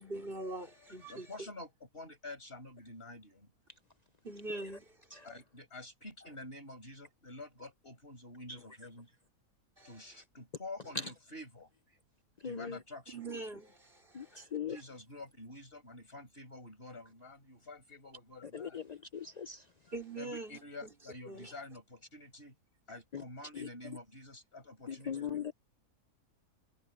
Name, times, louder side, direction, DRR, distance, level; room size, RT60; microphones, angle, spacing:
voice 1, 0.0-1.5 4.2-5.3 9.8-10.2 13.1-14.8 19.9-21.5, right 2 dB, 35° right, 4.8 m, -44 dB
voice 2, 1.1-1.7 1.9-3.5 5.2-9.1 9.8-12.0 12.4-13.2 14.6-18.8 20.2-22.5 22.9-25.5, left 2 dB, 35° left, 6.6 m, -48 dB
voice 3, 12.4-12.8 14.1-14.8 18.5-19.6 23.1-23.2 23.5-23.7 24.9-25.5, left 8 dB, 80° left, 0.3 m, -39 dB
omnidirectional pair, 1.7 m